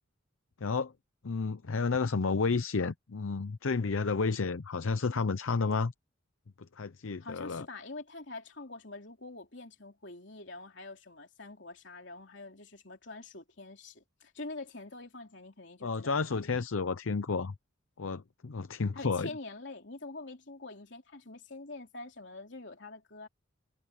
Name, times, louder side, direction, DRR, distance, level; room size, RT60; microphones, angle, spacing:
voice 1, 0.6-0.9 1.2-5.9 6.8-7.7 15.8-17.5 18.0-19.3, left 4 dB, 75° left, 0.7 m, -31 dB
voice 2, 7.2-16.2 18.9-23.3, left 2 dB, 60° left, 3.5 m, -45 dB
head